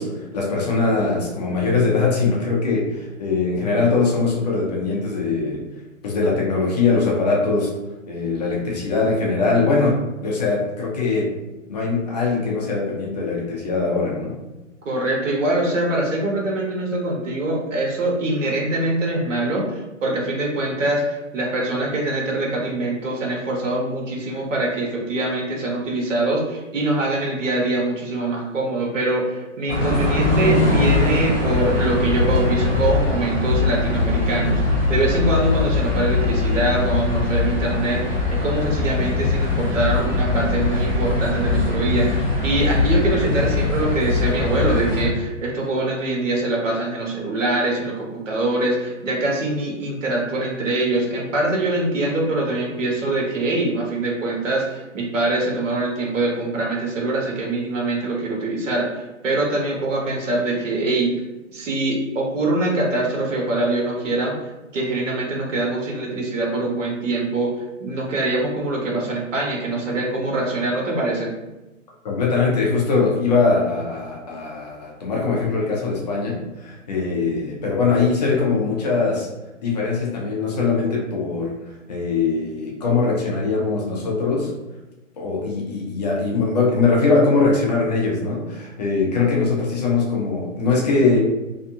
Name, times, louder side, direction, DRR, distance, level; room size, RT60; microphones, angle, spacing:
voice 1, 0.0-5.6 6.0-7.7 8.1-11.3 11.7-14.4 72.0-79.3 79.6-81.5 81.9-84.5 85.2-91.2, left 4 dB, 35° left, -3 dB, 0.5 m, -21 dB
voice 2, 14.8-61.1 61.5-64.3 64.7-67.5 67.8-71.4, right 2 dB, 70° right, -2 dB, 1.0 m, -23 dB
sound 1, 29.7-45.1, left 3 dB, 25° right, 0.9 m, -21 dB
2.6 x 2.3 x 2.7 m, 1.0 s
hypercardioid pair, 140°, 39 cm